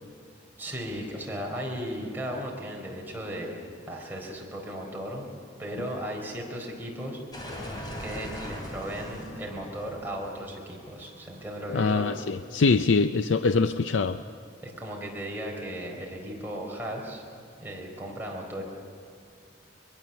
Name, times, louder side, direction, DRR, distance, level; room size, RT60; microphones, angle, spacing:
voice 1, 0.6-5.3 5.6-7.2 8.0-12.1 14.6-17.2 17.6-18.6, equal, 10° right, -1 dB, 4.3 m, -36 dB
sound 1, 7.3-12.1, equal, 25° left, 3.6 m, -40 dB
voice 2, 11.7-14.2, left 4 dB, 80° left, 10 dB, 0.5 m, -23 dB
23.0 x 22.0 x 7.0 m, 2.3 s
head